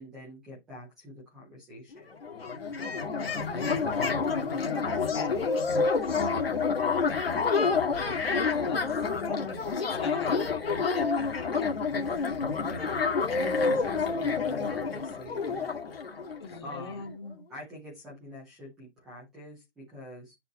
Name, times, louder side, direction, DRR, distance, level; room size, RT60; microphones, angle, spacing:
voice 1, 0.0-2.2 12.6-13.1 13.3-15.7 16.6-17.1 17.5-20.3, left 1 dB, ahead, 1.0 m, -45 dB
sound 1, 1.9-2.0 2.2-16.8, left 4 dB, 55° left, 2.4 m, -28 dB
voice 2, 4.9-5.5 5.9-6.5 8.3-8.8 9.7-10.6 16.4-17.4, left 5 dB, 20° left, 2.0 m, -39 dB
9.9 x 5.1 x 4.2 m
hypercardioid pair, 175°, 35 cm